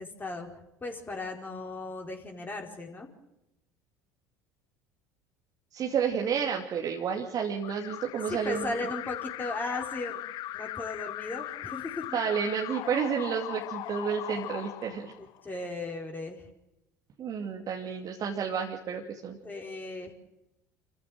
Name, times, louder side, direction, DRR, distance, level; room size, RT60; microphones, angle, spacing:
voice 1, 0.0-3.1 8.3-10.2 10.5-12.2 15.4-16.4 19.4-20.1, left 2 dB, 20° left, 1 dB, 4.6 m, -36 dB
voice 2, 5.7-8.7 12.1-15.1 17.2-19.4, right 7 dB, 45° right, 1 dB, 2.6 m, -31 dB
Alarm, 7.6-15.5, left 15 dB, 55° left, 0.8 m, -39 dB
27.5 x 15.0 x 7.9 m, 0.88 s
figure-of-eight pair, 65°, 9 cm